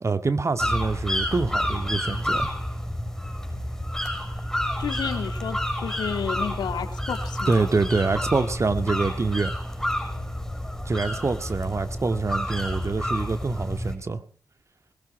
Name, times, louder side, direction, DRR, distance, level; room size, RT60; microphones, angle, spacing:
voice 1, 0.0-2.5 7.5-9.6 10.9-14.2, right 4 dB, 40° right, 2.0 m, -25 dB
sound 1, 0.6-13.9, equal, 5° left, 6.7 m, -29 dB
voice 2, 4.8-7.7, left 8 dB, 80° left, 2.4 m, -31 dB
20.5 x 15.5 x 4.5 m
supercardioid pair, 40°, 7 cm